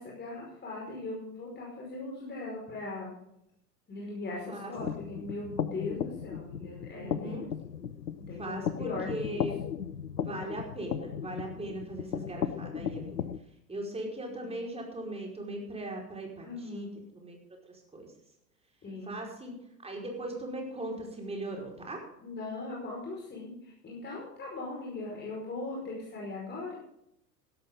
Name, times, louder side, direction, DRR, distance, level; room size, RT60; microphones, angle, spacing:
voice 1, 0.0-3.1 3.9-7.5 8.3-9.5 14.4-14.5 16.4-16.9 18.8-19.1 22.2-26.7, left 2 dB, 20° left, -3 dB, 5.4 m, -39 dB
sound 1, 4.7-13.4, left 8 dB, 85° left, 0.8 m, -36 dB
voice 2, 6.9-7.5 8.4-9.5 10.2-13.2 13.7-16.9 17.1-17.4 17.7-18.1 19.0-19.5 19.8-22.0, right 1 dB, 10° right, 0 dB, 5.0 m, -39 dB
16.0 x 13.0 x 3.9 m, 0.78 s
figure-of-eight pair, 90°, 49 cm